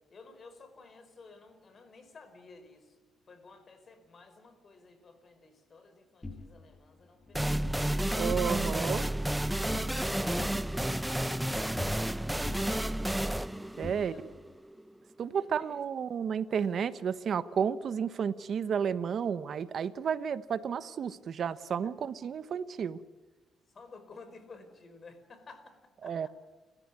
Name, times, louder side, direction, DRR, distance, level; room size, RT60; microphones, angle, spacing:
voice 1, 0.1-2.9 3.3-7.8 9.6-10.8 13.8-14.2 15.3-15.8 21.8-21.9 23.7-25.8 26.0-26.3, left 4 dB, 45° left, 9 dB, 5.2 m, -54 dB
sound 1, 6.2-7.8 8.2-8.9 9.1-10.0 10.4-12.2 12.4-14.5, left 2 dB, 15° left, 6.2 m, -46 dB
sound 2, 7.3-14.8, right 1 dB, 5° right, 0.9 m, -31 dB
voice 2, 8.1-9.1 13.8-14.1 15.2-23.0 26.0-26.3, right 7 dB, 55° right, 13 dB, 1.2 m, -32 dB
30.0 x 14.0 x 9.6 m, 1.2 s
cardioid pair, 90°, 0 cm